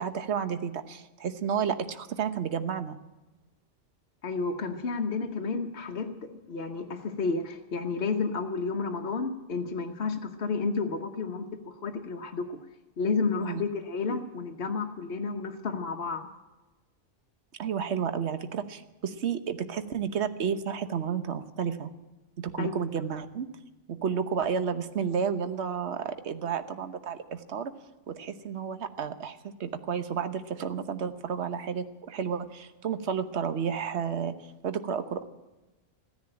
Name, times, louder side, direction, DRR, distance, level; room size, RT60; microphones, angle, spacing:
voice 1, 0.0-3.0 13.4-13.6 17.6-21.9 22.4-23.5 23.9-27.7 28.1-34.3 34.6-35.2, right 7 dB, 65° right, 10 dB, 1.3 m, -31 dB
voice 2, 4.2-12.6 13.0-16.3 22.6-22.8, left 4 dB, 60° left, 3 dB, 1.3 m, -31 dB
15.0 x 10.5 x 8.8 m, 1.1 s
omnidirectional pair, 1.2 m